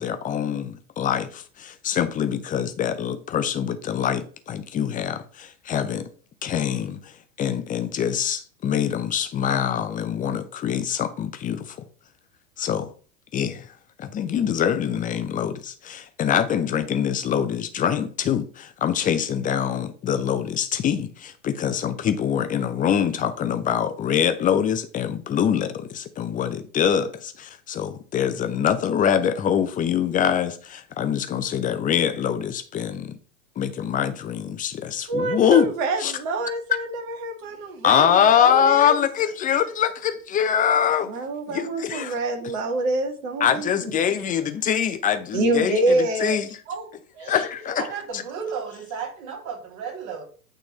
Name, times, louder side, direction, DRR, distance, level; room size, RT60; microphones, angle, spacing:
voice 1, 0.0-6.1 6.4-7.0 7.4-11.8 12.6-12.9 13.3-13.7 14.0-33.1 33.6-35.7 36.0-36.1 37.8-41.1 41.5-42.1 43.4-46.4 47.2-47.8, left 8 dB, 20° left, 0.7 m, -24 dB
voice 2, 35.1-39.0 41.0-43.9 45.3-46.4 46.7-46.9 47.2-47.7, right 2 dB, 60° right, 2.0 m, -26 dB
voice 3, 47.8-50.2, right 6 dB, 40° right, 2.7 m, -33 dB
8.7 x 3.8 x 3.1 m
figure-of-eight pair, 90°, 44 cm